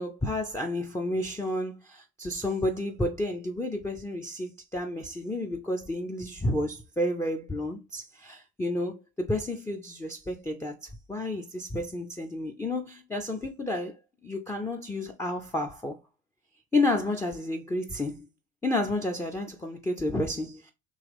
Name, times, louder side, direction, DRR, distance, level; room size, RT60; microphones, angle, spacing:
voice 1, 0.0-16.0 16.7-18.3 18.6-20.7, left 1 dB, 5° left, 0.4 m, -31 dB
3.8 x 2.9 x 3.3 m
hypercardioid pair, 65°, 43 cm